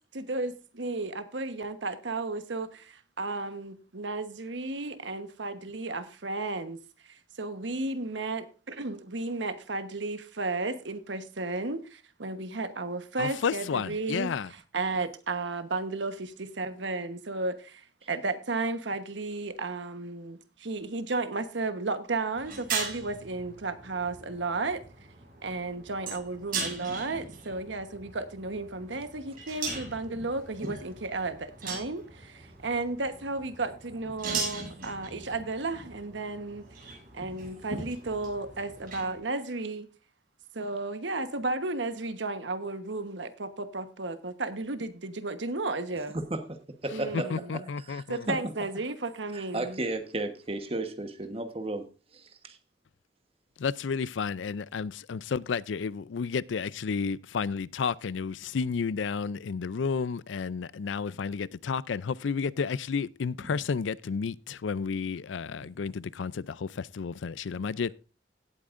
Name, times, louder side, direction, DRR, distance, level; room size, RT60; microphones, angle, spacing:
voice 1, 0.1-6.8 7.1-24.8 25.4-36.7 37.1-39.9 40.5-46.2 46.9-47.6 48.1-49.8, right 3 dB, 80° right, 1.2 m, -33 dB
voice 2, 13.2-14.5 47.1-48.3 53.6-67.9, left 5 dB, 90° left, 0.4 m, -31 dB
sound 1, 22.3-39.2, right 4 dB, 50° right, 7.1 m, -39 dB
voice 3, 46.1-47.6 47.9-48.4 49.3-51.9 52.1-52.6, right 2 dB, 30° right, 1.2 m, -34 dB
17.0 x 8.6 x 2.6 m
head